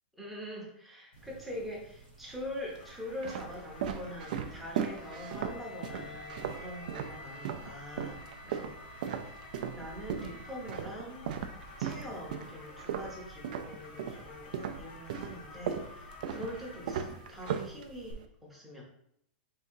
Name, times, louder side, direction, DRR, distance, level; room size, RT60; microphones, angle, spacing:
voice 1, 0.2-9.2 9.7-11.2 11.8-18.8, equal, ahead, -4 dB, 0.7 m, -43 dB
sound 1, 1.1-18.1, left 2 dB, 75° left, 1.0 m, -52 dB
sound 2, 1.2-1.9 2.6-7.7 8.0-14.2 14.5-18.2, right 8 dB, 50° right, 0.3 m, -37 dB
Wind instrument woodwind instrument, 4.8-11.0, left 2 dB, 45° left, 0.5 m, -51 dB
3.6 x 2.7 x 4.5 m, 0.73 s
supercardioid pair, 180°, 6 cm